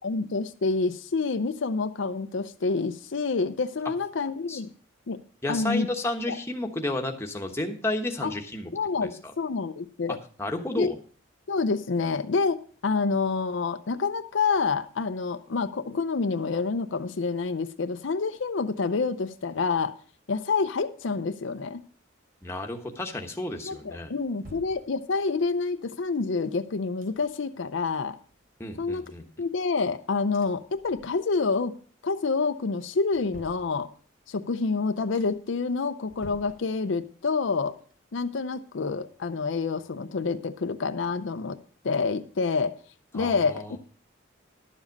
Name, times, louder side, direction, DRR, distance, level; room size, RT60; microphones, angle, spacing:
voice 1, 0.0-4.7 5.1-5.2 5.5-5.9 6.3-6.4 8.2-8.3 8.7-10.2 10.8-10.9 11.5-19.9 20.3-21.8 23.6-28.2 28.8-29.0 29.4-31.7 32.0-33.9 34.3-37.7 38.1-41.6 41.8-42.7 43.1-43.8, left 4 dB, 65° left, 9 dB, 0.5 m, -28 dB
voice 2, 5.4-8.7 9.0-9.1 10.4-11.0 22.4-24.1 28.6-29.2 43.1-43.8, left 1 dB, 15° left, 3 dB, 1.1 m, -32 dB
sound 1, 24.1-25.4 26.1-27.6 27.9-28.0 28.3-29.9 30.3-31.5 31.8-32.3 32.8-34.2 34.7-34.8 35.1-35.6 36.0-37.2 37.5-39.3 39.7-39.8, left 1 dB, 45° right, 3.6 m, -53 dB
12.0 x 7.2 x 5.3 m, 0.43 s
head